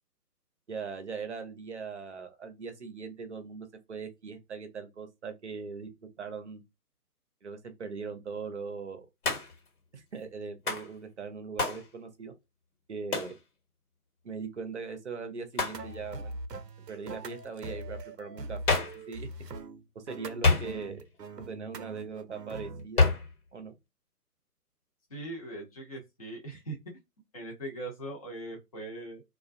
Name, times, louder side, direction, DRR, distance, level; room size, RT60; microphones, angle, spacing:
voice 1, 0.7-6.6 7.4-9.1 9.9-12.3 12.9-13.3 14.2-16.4 16.9-19.3 19.9-21.0 21.4-23.1 23.5-23.7, right 5 dB, 50° right, 0.6 m, -40 dB
Hands, 9.2-9.7 10.7-10.9 11.6-11.9 13.1-13.4 15.5-15.9 18.7-19.0 20.4-21.0 23.0-23.3, left 3 dB, 65° left, 1.2 m, -27 dB
sound 1, 15.7-22.9, right 2 dB, 90° right, 0.6 m, -42 dB
voice 2, 25.1-26.8 27.3-29.2, right 2 dB, 25° left, 0.7 m, -40 dB
2.3 x 2.2 x 2.5 m
figure-of-eight pair, 140°, 47 cm